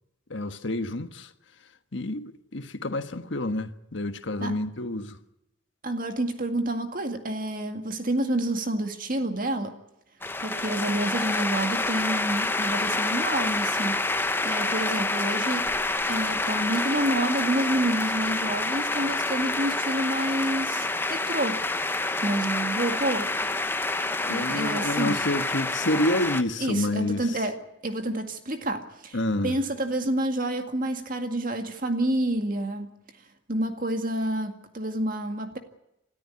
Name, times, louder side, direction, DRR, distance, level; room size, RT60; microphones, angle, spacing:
voice 1, 0.3-1.3 1.9-5.2 24.2-27.2 29.1-29.5, left 1 dB, 70° left, 1.5 m, -28 dB
voice 2, 5.8-9.8 10.4-14.1 14.4-15.7 16.1-21.6 22.2-23.3 24.3-25.2 26.6-27.6 27.8-29.2 29.4-32.9 33.5-35.6, right 1 dB, 45° right, 2.1 m, -28 dB
sound 1, 10.2-26.4, left 2 dB, 10° left, 0.8 m, -28 dB
27.0 x 13.5 x 9.7 m
head